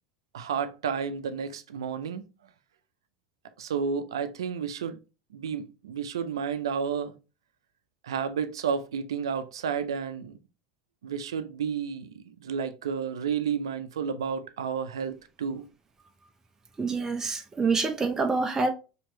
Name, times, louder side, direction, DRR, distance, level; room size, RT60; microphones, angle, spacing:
voice 1, 0.3-2.2 3.6-5.0 5.3-7.2 8.0-10.4 11.0-15.6, right 6 dB, 90° right, 0.4 m, -31 dB
voice 2, 16.8-18.7, right 4 dB, 20° right, 0.6 m, -26 dB
4.4 x 2.8 x 2.8 m
hypercardioid pair, 80°, 2 cm